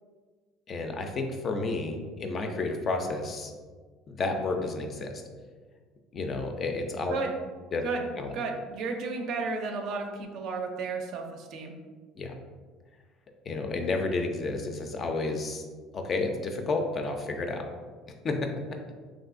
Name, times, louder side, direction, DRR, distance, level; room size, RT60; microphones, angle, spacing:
voice 1, 0.7-3.5 4.1-5.1 6.1-7.1 7.7-7.8 8.2-8.3 12.2-12.3 13.5-15.6 15.9-17.6 18.2-18.5, left 3 dB, 40° left, 4 dB, 0.4 m, -31 dB
voice 2, 8.3-11.7, right 4 dB, 60° right, 3 dB, 0.4 m, -33 dB
3.0 x 2.4 x 2.5 m, 1.5 s
supercardioid pair, 100°, 0 cm